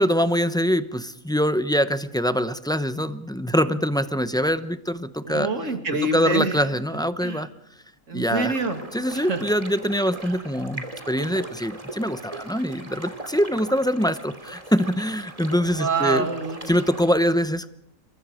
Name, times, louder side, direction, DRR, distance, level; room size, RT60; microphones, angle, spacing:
voice 1, 0.0-5.5 6.1-7.5 8.1-8.5 8.9-16.3 16.7-17.7, equal, 5° left, 12 dB, 0.6 m, -24 dB
voice 2, 5.2-6.6 7.2-7.4 8.1-8.8 9.1-9.4 10.2-10.4 15.8-16.7, right 3 dB, 65° right, 6 dB, 2.7 m, -26 dB
sound 1, 8.4-17.1, right 1 dB, 25° right, 2.7 m, -39 dB
28.0 x 23.5 x 5.0 m, 0.72 s
omnidirectional pair, 1.4 m